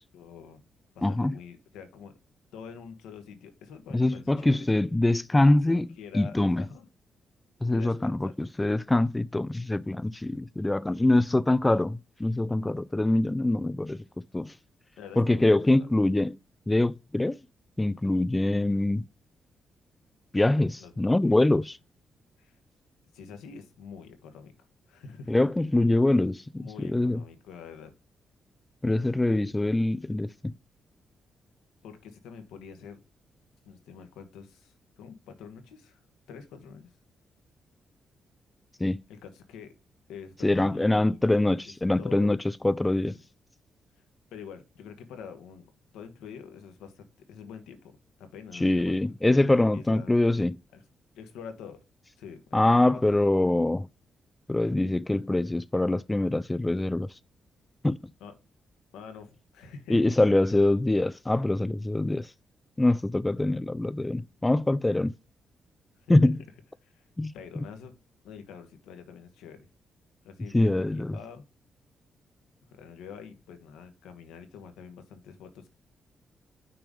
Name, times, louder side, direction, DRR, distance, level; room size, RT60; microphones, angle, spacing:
voice 1, 0.1-0.6 0.9-2.1 2.5-4.7 5.4-6.9 7.7-8.3 15.0-15.9 20.8-21.5 22.4-22.5 23.1-24.5 24.9-25.4 26.6-27.9 31.8-33.0 33.6-36.0 36.3-36.9 39.1-39.7 40.1-41.2 42.0-42.4 42.9-43.2 44.3-45.7 45.9-47.9 48.2-50.1 50.7-50.8 51.1-51.8 52.2-53.3 58.2-58.3 58.9-60.0 66.0-66.1 66.8-67.0 67.3-67.9 68.2-69.7 70.2-71.4 72.7-75.7, left 6 dB, 85° left, 1.1 m, -46 dB
voice 2, 1.0-1.4 3.9-5.9 6.1-6.6 7.6-14.0 14.3-14.5 15.2-16.4 16.7-17.4 17.8-19.1 20.3-21.8 25.3-27.2 28.8-30.5 38.8-39.0 40.4-42.4 42.6-43.2 48.5-50.6 52.5-53.9 54.5-57.1 57.8-58.0 59.9-62.3 62.8-65.1 66.1-66.4 67.2-67.6 70.5-71.2, left 2 dB, 15° left, 0.3 m, -24 dB
6.0 x 3.5 x 5.0 m
supercardioid pair, 50°, 0 cm